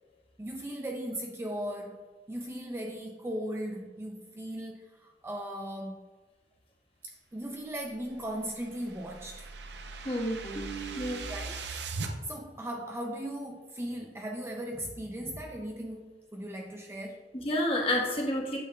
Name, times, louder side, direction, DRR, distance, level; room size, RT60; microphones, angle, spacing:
voice 1, 0.4-6.1 7.0-9.5 11.3-11.6 12.2-17.3, right 1 dB, 15° right, 1 dB, 0.4 m, -38 dB
sound 1, 8.1-12.1, right 4 dB, 65° right, 0.6 m, -40 dB
voice 2, 10.0-11.3 17.3-18.6, left 1 dB, 30° left, 0 dB, 1.2 m, -30 dB
8.6 x 6.7 x 2.3 m, 1.3 s
head